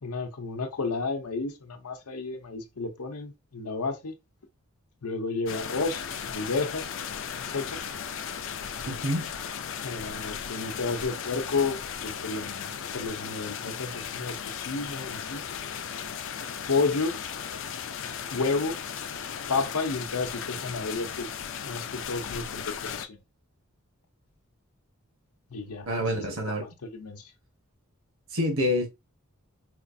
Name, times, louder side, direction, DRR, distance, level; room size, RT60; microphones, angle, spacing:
voice 1, 0.0-4.1 5.0-6.9 7.4-7.8 9.8-15.4 16.7-17.2 18.3-18.8 19.5-21.4 21.6-23.2 25.5-27.2, left 4 dB, 90° left, 0.7 m, -31 dB
sound 1, 5.5-23.1, left 7 dB, 55° left, 0.4 m, -36 dB
voice 2, 8.9-9.3 25.9-26.7 28.3-28.9, left 1 dB, 65° right, 1.2 m, -27 dB
4.3 x 2.4 x 2.6 m
head